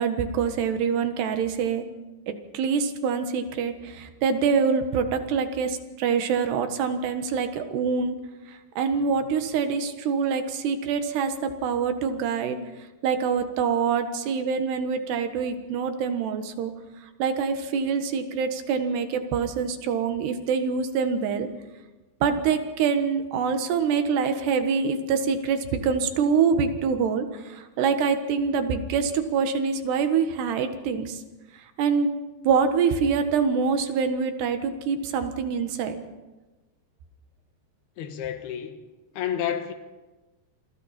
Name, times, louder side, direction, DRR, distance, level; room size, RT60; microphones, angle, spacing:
voice 1, 0.0-1.9 2.3-8.2 8.8-12.6 13.0-16.7 17.2-21.5 22.2-27.3 27.8-31.1 31.8-32.1 32.5-36.0, right 6 dB, 80° right, 3.6 m, -25 dB
voice 2, 38.0-38.8 39.1-39.7, left 9 dB, 75° left, 3.3 m, -30 dB
28.5 x 23.5 x 4.3 m
omnidirectional pair, 4.7 m